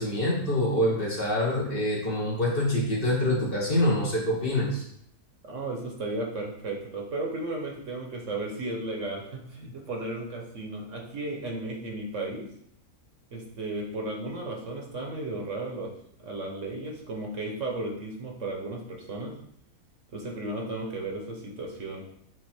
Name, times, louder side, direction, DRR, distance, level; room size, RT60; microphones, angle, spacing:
voice 1, 0.0-4.8, left 1 dB, 40° left, -4 dB, 1.5 m, -26 dB
voice 2, 5.5-12.5 13.3-15.9 16.2-19.3 20.1-22.0, right 2 dB, 60° right, 0 dB, 1.3 m, -34 dB
7.9 x 2.8 x 4.4 m, 0.71 s
omnidirectional pair, 1.6 m